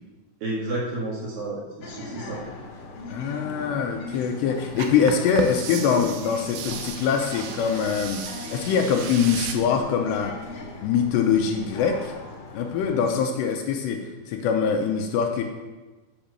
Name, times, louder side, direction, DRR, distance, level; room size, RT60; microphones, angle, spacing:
voice 1, 0.4-2.4, right 2 dB, 55° right, -5 dB, 3.5 m, -31 dB
sound 1, 1.8-13.2, left 2 dB, 65° left, 2.1 m, -39 dB
voice 2, 3.1-10.3 10.8-12.1 12.5-15.4, left 7 dB, 80° left, 3 dB, 2.8 m, -23 dB
sound 2, 4.7-9.5, right 6 dB, 85° right, 2.1 m, -35 dB
8.8 x 6.1 x 6.7 m, 1.2 s
omnidirectional pair, 5.3 m